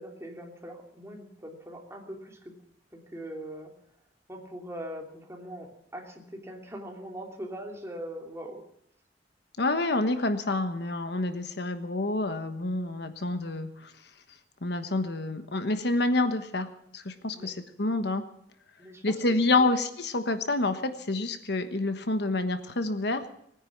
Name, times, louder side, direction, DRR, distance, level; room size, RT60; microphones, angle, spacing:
voice 1, 0.0-2.5 2.9-3.7 4.3-8.6 17.3-17.5 18.8-19.7, right 1 dB, 15° right, 1 dB, 2.8 m, -41 dB
voice 2, 9.6-13.9 14.6-18.2 19.0-23.3, left 2 dB, 65° left, 9 dB, 1.2 m, -28 dB
20.0 x 9.8 x 7.2 m, 0.73 s
head